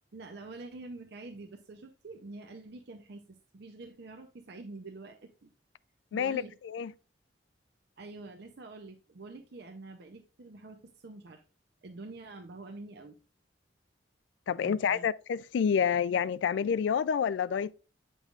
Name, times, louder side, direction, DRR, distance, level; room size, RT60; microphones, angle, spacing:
voice 1, 0.1-5.5 6.1-6.5 8.0-11.4 11.8-13.2 14.6-15.0, right 3 dB, 60° right, 0.6 m, -46 dB
voice 2, 6.1-6.9 14.5-17.7, left 7 dB, 75° left, 0.3 m, -28 dB
8.6 x 5.4 x 2.4 m
head